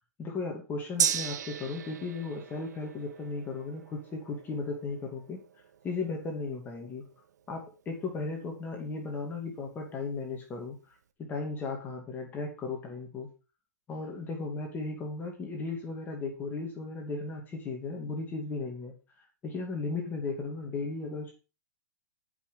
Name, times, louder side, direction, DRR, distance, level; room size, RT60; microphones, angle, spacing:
voice 1, 0.2-5.4 5.8-7.1 7.5-13.3 13.9-21.3, left 3 dB, 20° left, 1 dB, 2.7 m, -36 dB
Gong, 1.0-8.8 9.1-9.2, right 8 dB, 85° right, 1.3 m, -37 dB
14.0 x 6.3 x 5.4 m, 0.32 s
hypercardioid pair, 135°, 9 cm